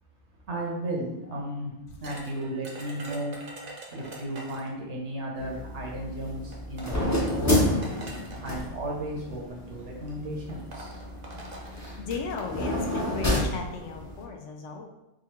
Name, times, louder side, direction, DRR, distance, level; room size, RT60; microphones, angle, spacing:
voice 1, 0.5-3.3 3.9-7.7 8.4-10.9, right 1 dB, 70° right, -1 dB, 1.2 m, -34 dB
sound 1, 2.0-4.8 5.9-6.0 6.5-8.7 9.6-9.8 10.1-10.2 10.5-12.5, right 2 dB, 50° right, 0.9 m, -44 dB
sound 2, 5.3-14.2, left 1 dB, 20° left, 0.6 m, -30 dB
voice 2, 12.0-14.9, left 5 dB, 85° left, 3 dB, 1.0 m, -35 dB
3.7 x 2.4 x 4.4 m, 0.91 s
omnidirectional pair, 1.2 m